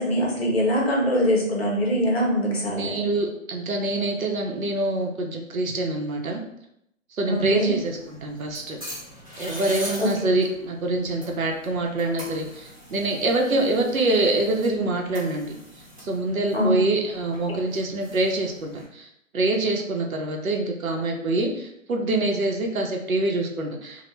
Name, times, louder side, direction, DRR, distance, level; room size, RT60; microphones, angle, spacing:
voice 1, 0.0-2.9 7.3-7.7 10.0-10.1 16.5-16.8, equal, 50° left, -2 dB, 0.8 m, -23 dB
voice 2, 2.7-6.4 7.1-8.8 9.4-15.6 16.0-24.1, right 2 dB, 90° right, 2 dB, 0.7 m, -25 dB
sound 1, 7.3-18.9, equal, 25° right, 0.6 m, -42 dB
2.1 x 2.1 x 3.0 m, 0.77 s
hypercardioid pair, 170°, 41 cm